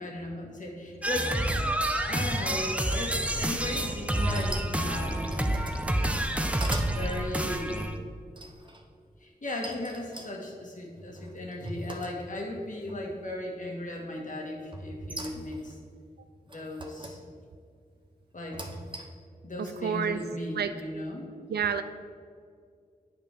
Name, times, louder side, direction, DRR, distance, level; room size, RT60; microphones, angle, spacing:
voice 1, 0.0-1.4 2.1-5.5 6.9-7.8 9.2-15.8 16.5-17.2 18.3-18.6 19.4-21.3, left 1 dB, 50° left, 0 dB, 1.5 m, -37 dB
sound 1, 1.0-8.0, right 1 dB, 10° right, 0.6 m, -29 dB
sound 2, 1.9-3.6 4.2-4.8 5.2-5.8 6.3-7.0 8.4-8.8 9.6-12.5 12.9-13.4 14.7-15.7 16.5-17.2 18.3-19.3, right 1 dB, 30° right, 0.9 m, -38 dB
voice 2, 19.6-20.2 20.5-20.7 21.5-21.8, right 7 dB, 85° right, 10 dB, 0.4 m, -29 dB
9.1 x 5.2 x 3.5 m, 2.2 s
cardioid pair, 50°, 16 cm